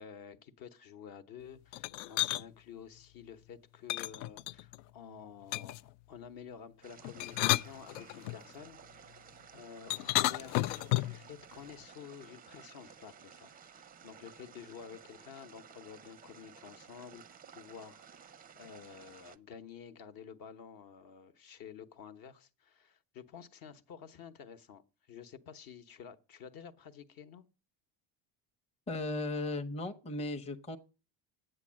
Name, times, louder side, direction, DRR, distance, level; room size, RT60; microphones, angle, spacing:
voice 1, 0.0-9.2 9.5-17.2 17.5-27.5, left 7 dB, 50° left, 1.0 m, -51 dB
sound 1, 1.7-2.4 3.9-4.8 5.5-5.9 7.0-8.4 9.9-11.2, left 17 dB, 85° left, 0.5 m, -32 dB
sound 2, 6.8-19.4, right 7 dB, 20° right, 0.5 m, -55 dB
voice 2, 28.9-30.8, left 2 dB, 15° left, 0.7 m, -36 dB
9.8 x 7.9 x 7.4 m
cardioid pair, 140°, 45 cm